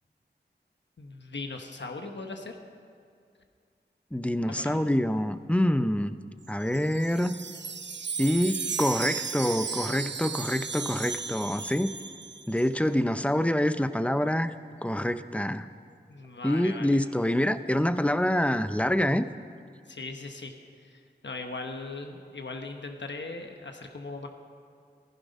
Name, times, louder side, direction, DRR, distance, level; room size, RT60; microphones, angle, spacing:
voice 1, 1.0-2.6 4.5-4.9 16.1-17.0 19.9-24.3, left 3 dB, 90° left, 4 dB, 1.1 m, -39 dB
voice 2, 4.1-6.1 6.5-7.4 8.2-11.9 12.5-14.5 14.8-15.7 16.4-19.3, left 1 dB, 5° left, 11 dB, 0.6 m, -26 dB
Wind chime, 6.5-12.7, right 5 dB, 80° right, 0.7 m, -35 dB
15.0 x 15.0 x 5.3 m, 2.3 s
wide cardioid pair, 65°, 18 cm